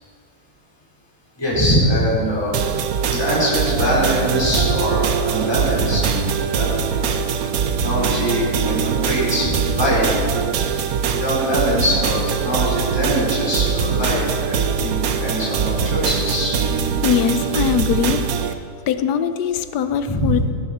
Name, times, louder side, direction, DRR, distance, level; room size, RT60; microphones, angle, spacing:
voice 1, 1.4-2.6 3.1-6.1 6.3-7.1 7.7-10.3 11.1-16.5 20.1-20.4, equal, 15° left, -8 dB, 4.0 m, -22 dB
sound 1, 2.5-18.5, right 7 dB, 65° right, 1.2 m, -22 dB
voice 2, 17.0-18.3 18.9-20.4, left 8 dB, 80° left, 11 dB, 1.2 m, -21 dB
17.5 x 11.0 x 4.3 m, 2.3 s
omnidirectional pair, 1.8 m